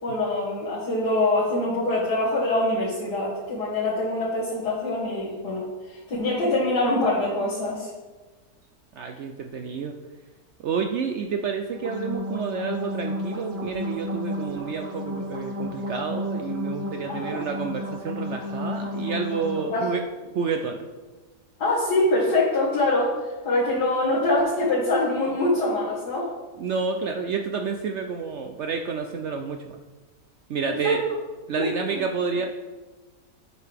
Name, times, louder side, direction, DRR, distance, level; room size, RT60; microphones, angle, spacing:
voice 1, 0.0-7.9 17.1-17.4 19.6-19.8 21.6-26.3 30.7-31.0 31.6-32.0, left 2 dB, 80° left, -10 dB, 2.3 m, -24 dB
voice 2, 9.0-9.9 10.6-20.0 20.3-20.8 26.6-29.8 30.5-31.0 31.5-32.5, right 5 dB, 70° right, 5 dB, 0.6 m, -29 dB
sound 1, 11.7-19.7, left 1 dB, 20° right, 1.5 m, -32 dB
8.8 x 6.6 x 3.4 m, 1.3 s
omnidirectional pair, 1.7 m